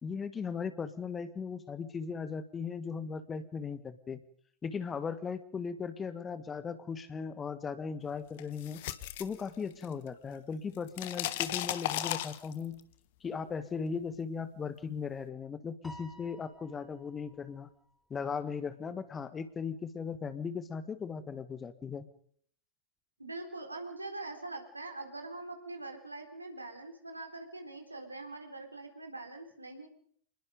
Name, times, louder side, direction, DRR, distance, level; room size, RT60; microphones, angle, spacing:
voice 1, 0.0-4.2 4.6-8.8 9.2-12.8 13.2-17.7 18.1-22.1, left 6 dB, 20° left, 12 dB, 1.6 m, -38 dB
sound 1, 8.4-10.1 10.3-12.8, left 14 dB, 50° left, 1.3 m, -36 dB
Piano, 15.8-18.3, equal, 5° left, 3.9 m, -54 dB
voice 2, 23.2-29.9, right 2 dB, 85° right, 4 dB, 3.9 m, -43 dB
27.0 x 20.5 x 5.3 m, 0.63 s
figure-of-eight pair, 90°, 0 cm